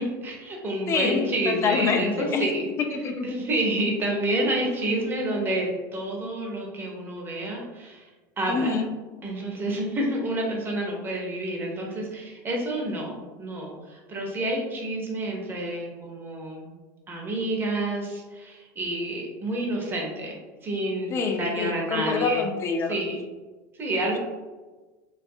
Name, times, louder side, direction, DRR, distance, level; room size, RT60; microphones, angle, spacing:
voice 1, 0.0-2.7 3.2-8.1 8.4-8.7 9.2-16.7 17.1-22.5 22.9-23.2 23.7-24.2, right 1 dB, 25° right, -1 dB, 0.6 m, -29 dB
voice 2, 0.9-2.5 2.9-3.3 8.5-8.9 21.1-22.9, left 5 dB, 30° left, 4 dB, 0.4 m, -26 dB
2.4 x 2.3 x 2.6 m, 1.3 s
supercardioid pair, 125°, 9 cm